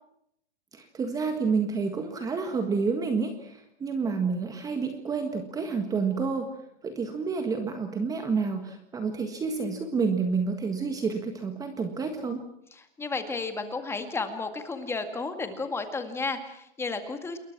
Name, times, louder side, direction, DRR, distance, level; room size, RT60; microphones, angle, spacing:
voice 1, 0.7-6.5 6.8-12.4, right 5 dB, 10° right, 7 dB, 1.7 m, -29 dB
voice 2, 12.7-17.4, left 3 dB, 5° left, 7 dB, 2.0 m, -33 dB
28.5 x 21.5 x 6.0 m, 0.73 s
hypercardioid pair, 155°, 33 cm